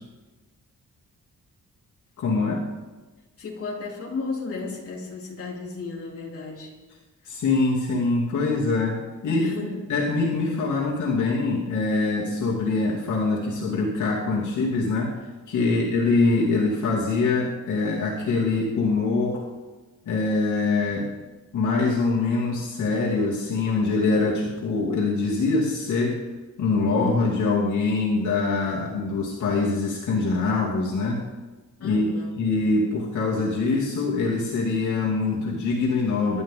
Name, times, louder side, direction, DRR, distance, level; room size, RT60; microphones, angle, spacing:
voice 1, 2.2-2.6 7.2-9.5 9.9-15.1 15.5-19.4 20.0-21.1 21.5-26.2 26.6-31.2 31.8-36.4, left 3 dB, 70° left, -4 dB, 2.8 m, -24 dB
voice 2, 3.4-6.7 9.3-9.8 15.7-15.9 31.8-32.3, left 3 dB, 45° left, -3 dB, 3.5 m, -34 dB
25.0 x 11.5 x 3.8 m, 1.2 s
wide cardioid pair, 170°, 31 cm